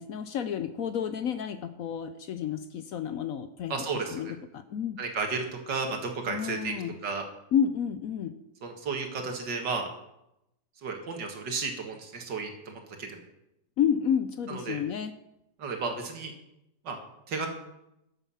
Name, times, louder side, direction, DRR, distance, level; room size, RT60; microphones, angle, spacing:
voice 1, 0.0-3.7 4.1-5.0 6.3-6.9 7.5-8.3 13.8-15.1, left 8 dB, 65° left, 11 dB, 0.9 m, -30 dB
voice 2, 3.7-4.2 5.0-6.7 7.0-7.2 8.6-9.9 10.8-13.2 14.5-14.8 15.6-16.3 16.9-17.0 17.3-17.5, right 4 dB, 80° right, 3 dB, 2.4 m, -33 dB
13.0 x 8.1 x 5.6 m, 0.86 s
omnidirectional pair, 1.9 m